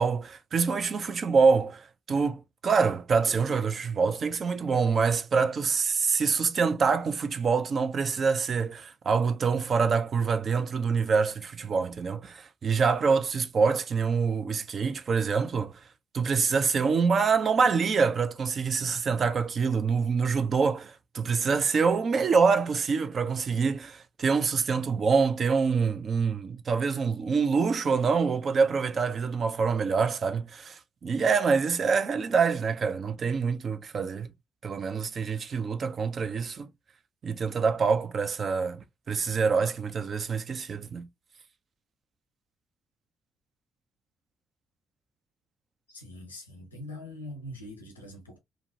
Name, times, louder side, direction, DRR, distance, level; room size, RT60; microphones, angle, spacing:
voice 1, 0.0-15.8 16.1-34.3 34.6-36.7 37.2-41.1, right 5 dB, 45° right, 0.4 m, -26 dB
voice 2, 45.9-48.4, left 1 dB, 90° left, 0.7 m, -43 dB
2.5 x 2.1 x 2.6 m
figure-of-eight pair, 45°, 0 cm